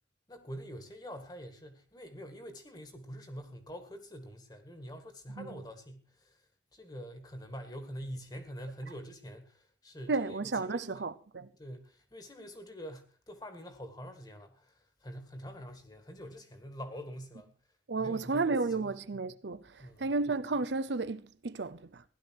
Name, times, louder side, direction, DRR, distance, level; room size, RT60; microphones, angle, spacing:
voice 1, 0.3-6.4 6.7-11.0 11.6-17.5 18.0-18.9 19.8-20.1, equal, 20° left, 1.9 m, -45 dB
voice 2, 10.1-11.5 17.9-22.0, right 3 dB, 70° right, 0.7 m, -33 dB
16.0 x 11.5 x 4.6 m
head